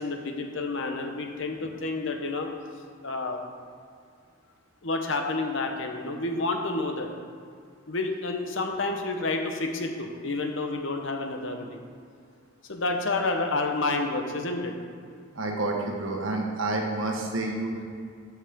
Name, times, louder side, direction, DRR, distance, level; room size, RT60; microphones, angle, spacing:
voice 1, 0.0-2.5 3.0-3.4 4.8-7.1 7.9-11.8 12.7-14.7, left 3 dB, 70° left, 3 dB, 1.1 m, -29 dB
voice 2, 15.3-17.8, right 2 dB, 85° right, 1 dB, 1.4 m, -29 dB
13.5 x 6.4 x 3.7 m, 2.2 s
head